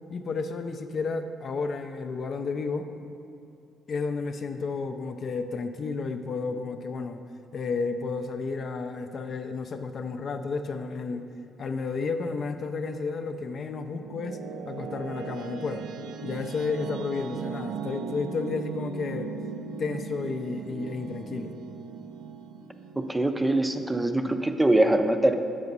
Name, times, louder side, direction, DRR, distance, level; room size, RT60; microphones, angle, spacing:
voice 1, 0.1-2.9 3.9-7.2 7.5-11.2 11.6-14.4 14.6-15.9 16.2-19.3 19.8-21.5, left 4 dB, 55° left, 7 dB, 0.4 m, -32 dB
sound 1, 13.4-24.4, right 5 dB, 90° right, 0.3 m, -38 dB
voice 2, 23.0-25.3, right 1 dB, 15° right, 7 dB, 0.4 m, -23 dB
6.9 x 4.9 x 5.3 m, 2.5 s
cardioid pair, 90°, 0 cm